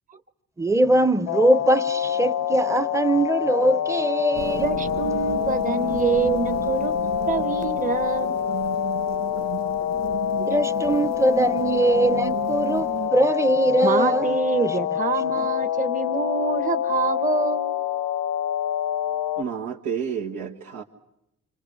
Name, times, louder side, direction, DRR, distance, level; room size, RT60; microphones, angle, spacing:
voice 1, 0.6-4.7 10.5-14.7 15.4-15.5, right 1 dB, 10° right, 0.8 m, -22 dB
sound 1, 1.3-19.4, left 11 dB, 75° left, 0.8 m, -26 dB
sound 2, 4.3-13.1, right 11 dB, 65° right, 0.8 m, -34 dB
voice 2, 4.6-6.9 7.3-8.4 10.4-10.5 13.8-17.8, right 4 dB, 25° right, 1.1 m, -26 dB
voice 3, 19.4-20.8, right 7 dB, 85° right, 1.9 m, -30 dB
27.0 x 26.5 x 6.4 m
cardioid pair, 90°, 30 cm